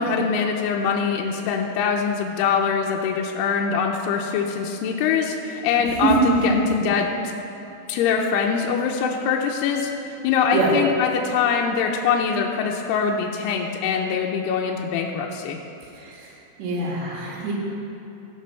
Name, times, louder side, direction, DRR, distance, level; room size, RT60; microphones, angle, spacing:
voice 1, 0.0-7.1 7.9-15.6, left 6 dB, 80° left, 0 dB, 2.6 m, -23 dB
voice 2, 6.0-6.6 10.5-10.7 15.9-16.3 16.6-17.5, right 4 dB, 85° right, -3 dB, 4.1 m, -23 dB
15.0 x 6.0 x 5.7 m, 3.0 s
omnidirectional pair, 4.9 m